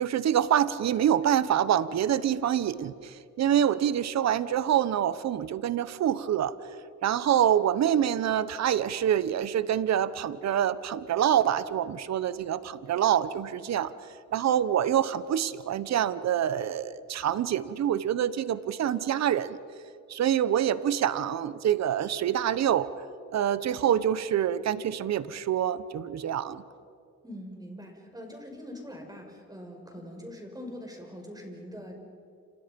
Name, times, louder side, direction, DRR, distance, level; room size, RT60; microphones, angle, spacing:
voice 1, 0.0-6.5 7.0-13.9 14.3-19.6 20.1-22.9 23.3-26.6, right 10 dB, 60° right, 16 dB, 1.1 m, -26 dB
voice 2, 27.2-32.0, equal, 10° right, 2 dB, 6.1 m, -43 dB
29.5 x 28.0 x 5.4 m, 2.4 s
cardioid pair, 90°, 30 cm